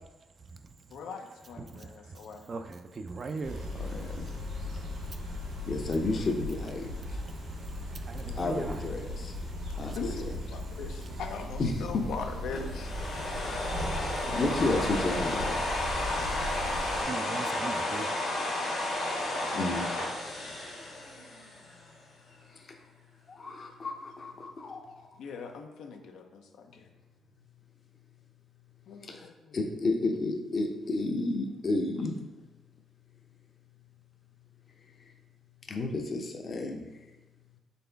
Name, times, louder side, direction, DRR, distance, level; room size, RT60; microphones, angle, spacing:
voice 1, 0.9-2.5 9.9-12.9 25.2-26.9 28.9-29.6, left 5 dB, 80° left, 5 dB, 0.5 m, -41 dB
voice 2, 2.5-3.6 7.9-8.8 9.7-9.9 17.1-18.1, right 4 dB, 40° right, 7 dB, 0.3 m, -39 dB
sound 1, 3.4-17.0, left 1 dB, 85° right, 1.5 m, -37 dB
voice 3, 3.8-4.3 5.7-6.9 8.4-9.3 9.8-10.3 11.6-12.1 13.9-15.5 19.5-19.9 23.3-25.0 29.1-29.3 29.5-32.2 35.7-36.9, left 2 dB, 40° left, 4 dB, 0.6 m, -31 dB
sound 2, 12.5-21.7, left 1 dB, 65° left, 1.2 m, -32 dB
4.1 x 3.8 x 3.4 m, 1.1 s
cardioid pair, 105°, 0 cm